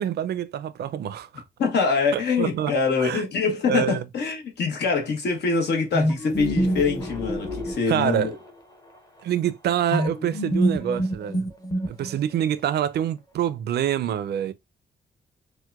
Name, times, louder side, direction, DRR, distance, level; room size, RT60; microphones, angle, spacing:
voice 1, 0.0-1.4 2.1-2.7 3.0-3.2 3.7-4.0 7.9-8.3 9.2-11.5 11.9-14.5, right 10 dB, 70° right, 0.4 m, -26 dB
voice 2, 1.6-8.4, left 5 dB, 75° left, 1.0 m, -24 dB
sound 1, 5.9-8.5 9.9-12.4, equal, 20° left, 0.7 m, -26 dB
4.5 x 2.1 x 2.3 m
wide cardioid pair, 135°, 18 cm